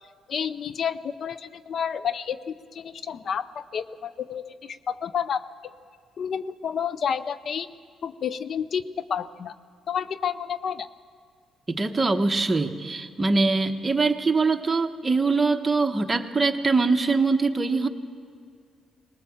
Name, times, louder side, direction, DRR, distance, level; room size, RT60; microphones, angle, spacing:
voice 1, 0.3-5.5 6.2-7.7 8.0-9.5 9.9-10.9, left 7 dB, 55° left, 15 dB, 0.5 m, -30 dB
voice 2, 11.7-17.9, right 3 dB, 25° right, 6 dB, 1.2 m, -23 dB
20.0 x 18.5 x 7.3 m, 2.1 s
cardioid pair, 90°, 0 cm